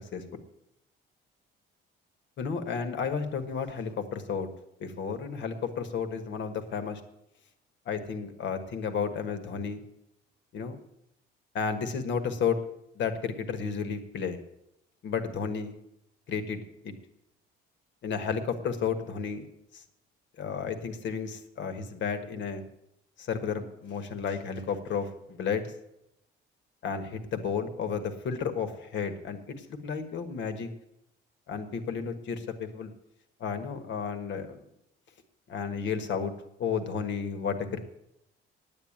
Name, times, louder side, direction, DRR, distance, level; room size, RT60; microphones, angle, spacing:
voice 1, 2.4-4.5 4.8-7.0 7.8-9.8 10.5-10.8 11.5-12.6 12.9-14.4 15.0-15.7 16.3-16.6 16.8-16.9 18.0-19.4 19.7-19.8 20.4-22.6 23.2-25.7 26.8-30.7 31.5-32.9 33.4-34.6 35.5-36.3 36.6-37.8, left 6 dB, 60° left, 8 dB, 1.5 m, -32 dB
9.3 x 8.9 x 8.7 m, 0.84 s
cardioid pair, 120°, 21 cm